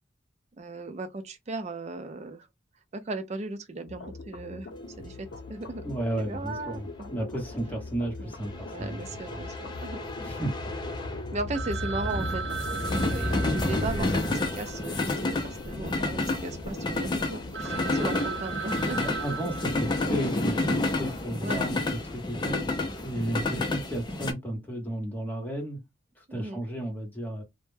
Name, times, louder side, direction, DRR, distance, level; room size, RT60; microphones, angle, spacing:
voice 1, 0.6-2.5 2.9-4.7 5.0-6.0 6.3-7.1 8.2-8.3 8.7-10.5 11.3-12.6 13.1-19.2 21.4-21.7 22.4-22.6 26.3-26.6, right 2 dB, 40° right, 0.5 m, -37 dB
sound 1, 3.9-20.4, left 3 dB, 90° left, 0.6 m, -44 dB
sound 2, 4.8-24.3, left 2 dB, 25° left, 0.4 m, -30 dB
voice 2, 5.8-9.4 10.2-10.6 19.0-25.8 26.2-27.4, right 1 dB, 10° left, 0.9 m, -34 dB
Telephone, 11.5-15.9 16.1-16.2 16.8-16.9 17.2-17.3 17.5-20.5, right 6 dB, 90° right, 0.6 m, -37 dB
2.2 x 2.1 x 3.1 m
head